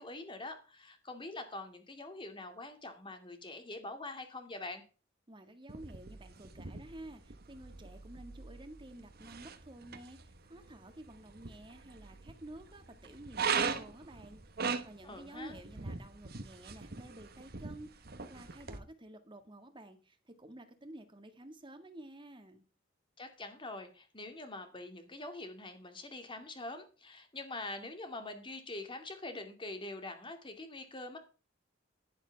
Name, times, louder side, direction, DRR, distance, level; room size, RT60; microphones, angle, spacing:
voice 1, 0.0-4.8 15.0-15.6 23.2-31.2, left 2 dB, 25° left, 6 dB, 2.4 m, -44 dB
voice 2, 5.3-22.6, right 1 dB, 25° right, 7 dB, 2.0 m, -51 dB
sound 1, 5.7-18.8, right 5 dB, 55° right, 1.3 m, -41 dB
11.0 x 11.0 x 3.5 m, 0.35 s
head